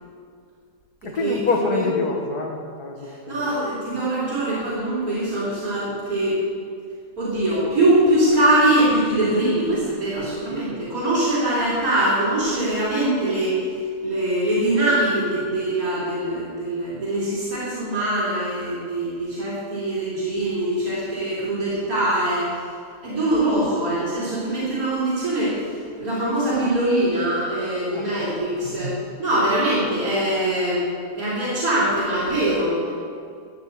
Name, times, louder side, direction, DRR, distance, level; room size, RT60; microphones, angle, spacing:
voice 1, 1.0-3.5 27.9-28.2, left 4 dB, 75° left, 1 dB, 2.1 m, -27 dB
voice 2, 3.0-6.4 7.2-13.6 14.0-22.6 23.0-30.8 31.1-32.9, right 1 dB, 65° right, -10 dB, 4.3 m, -22 dB
14.5 x 6.7 x 8.2 m, 2.2 s
omnidirectional pair, 1.7 m